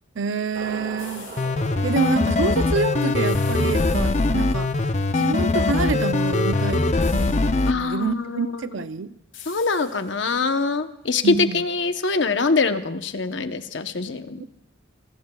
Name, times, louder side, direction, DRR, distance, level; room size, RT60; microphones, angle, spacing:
voice 1, 0.2-1.3 1.8-4.7 5.1-9.2 11.2-11.6 14.4-14.5, right 4 dB, 75° right, 12 dB, 0.5 m, -27 dB
Motorcycle, 0.5-5.5, right 2 dB, 50° right, 2.0 m, -40 dB
sound 1, 1.0-1.7 3.2-4.7 7.0-7.8 9.3-10.4, left 8 dB, 85° left, 6.9 m, -45 dB
sound 2, 1.4-7.7, left 2 dB, 35° left, 0.5 m, -21 dB
voice 2, 7.7-8.7 9.5-14.4, left 4 dB, 65° left, 8 dB, 0.9 m, -24 dB
26.0 x 19.0 x 2.3 m, 0.81 s
head